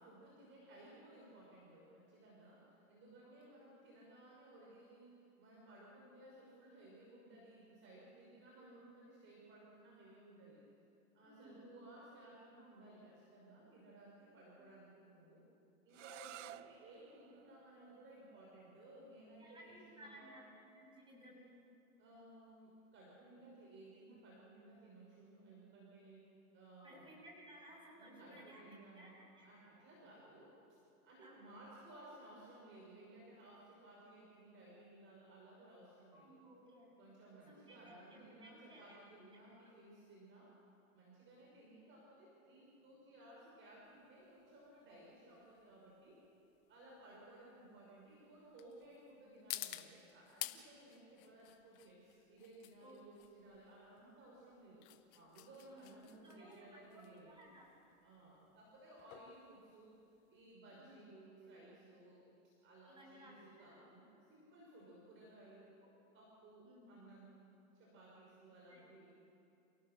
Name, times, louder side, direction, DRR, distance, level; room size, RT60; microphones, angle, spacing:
voice 1, 0.0-10.6 11.1-15.4 15.8-20.4 22.0-27.1 28.0-29.2 29.4-30.6 31.0-36.4 37.0-40.5 40.9-46.2 46.7-54.9 55.1-57.3 58.0-60.0 60.3-62.2 62.6-65.8 66.1-67.4 67.7-69.1, right 1 dB, 25° right, -4 dB, 5.6 m, -59 dB
voice 2, 3.2-3.5 8.5-8.8 11.2-11.7 16.2-16.5 19.4-21.6 26.8-28.6 29.0-29.1 29.4-29.5 31.2-31.4 36.1-36.9 37.5-39.0 39.6-39.7 46.9-47.2 52.8-53.0 55.7-57.7 60.7-61.0 62.9-63.8 66.6-67.0 68.7-68.9, equal, 10° right, -3 dB, 7.4 m, -59 dB
sound 1, 15.9-21.6, right 14 dB, 55° right, 0.6 m, -58 dB
sound 2, 43.9-60.5, left 16 dB, 35° left, 1.0 m, -52 dB
28.5 x 17.5 x 6.7 m, 2.6 s
hypercardioid pair, 130°, 45 cm